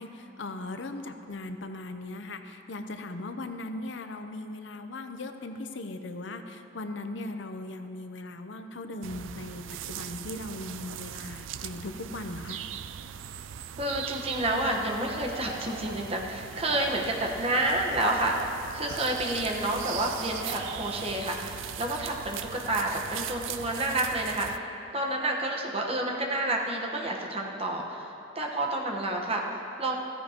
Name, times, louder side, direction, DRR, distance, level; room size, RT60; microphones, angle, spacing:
voice 1, 0.0-12.6, left 2 dB, 70° left, 7 dB, 0.7 m, -38 dB
sound 1, 9.0-24.6, right 9 dB, 80° right, 0.4 m, -40 dB
voice 2, 13.8-28.1 28.3-29.9, right 1 dB, 30° right, 0 dB, 1.2 m, -29 dB
Tools, 15.1-16.0 16.5-17.3 17.7-19.6 20.3-21.2, right 2 dB, 65° right, 1.8 m, -42 dB
15.0 x 14.5 x 2.9 m, 2.8 s
head